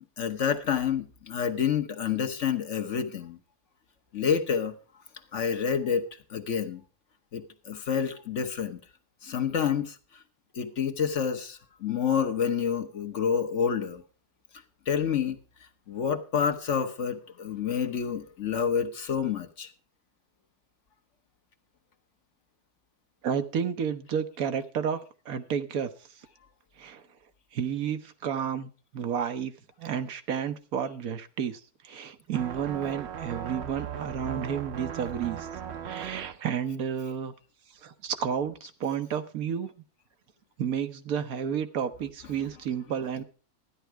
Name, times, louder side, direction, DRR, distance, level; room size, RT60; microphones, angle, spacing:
voice 1, 0.2-3.4 4.1-4.7 5.3-6.0 6.3-6.8 7.3-8.8 9.2-10.0 10.5-14.0 14.9-15.4 15.9-19.7 42.4-42.5, left 7 dB, 55° left, 1.3 m, -28 dB
voice 2, 23.2-25.0 25.3-25.9 26.8-27.0 27.5-29.5 29.8-35.5 35.8-37.3 37.8-39.7 40.6-43.2, right 8 dB, 75° right, 1.4 m, -31 dB
sound 1, 32.3-36.3, right 8 dB, 55° right, 1.0 m, -37 dB
13.0 x 10.0 x 4.6 m
omnidirectional pair, 1.6 m